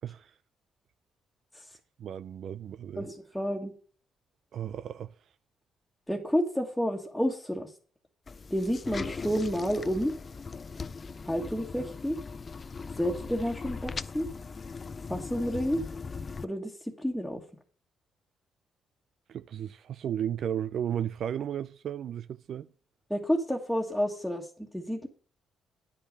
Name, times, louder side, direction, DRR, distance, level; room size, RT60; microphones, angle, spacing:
voice 1, 2.0-3.0 4.5-5.1 19.3-22.7, right 9 dB, 65° right, 0.4 m, -34 dB
voice 2, 3.0-3.7 6.1-7.7 8.5-10.1 11.2-12.2 13.0-14.3 15.1-15.8 16.4-17.4 23.1-25.1, equal, ahead, 1.7 m, -30 dB
sound 1, 8.3-16.5, left 4 dB, 35° left, 0.5 m, -39 dB
10.0 x 5.7 x 6.6 m
cardioid pair, 90°, 0 cm